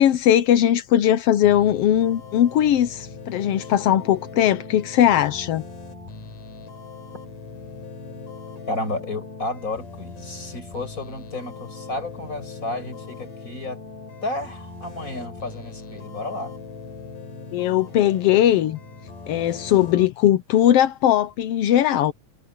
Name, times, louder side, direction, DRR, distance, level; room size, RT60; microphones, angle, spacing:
voice 1, 0.0-5.6 17.5-18.8 19.3-22.1, left 11 dB, 70° left, 1.5 m, -19 dB
sound 1, 1.4-20.1, left 4 dB, 85° left, 6.5 m, -40 dB
voice 2, 8.7-13.8 14.2-16.5, left 2 dB, 25° left, 7.0 m, -32 dB
omnidirectional pair, 3.6 m